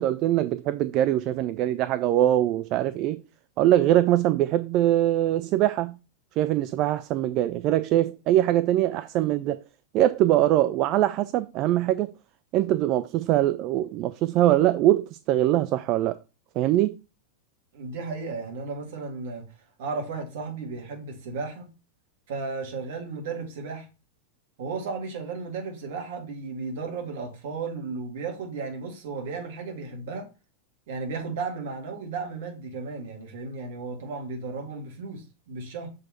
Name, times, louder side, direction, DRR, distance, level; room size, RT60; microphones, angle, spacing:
voice 1, 0.0-3.2 3.6-6.0 6.4-9.6 9.9-12.1 12.5-16.2 16.6-17.0, right 13 dB, 40° right, 0.3 m, -22 dB
voice 2, 17.7-19.5 19.8-21.7 22.3-23.9 24.6-30.3 30.9-35.9, right 4 dB, 55° right, 1.9 m, -34 dB
6.4 x 4.0 x 4.2 m
figure-of-eight pair, 90°, 0 cm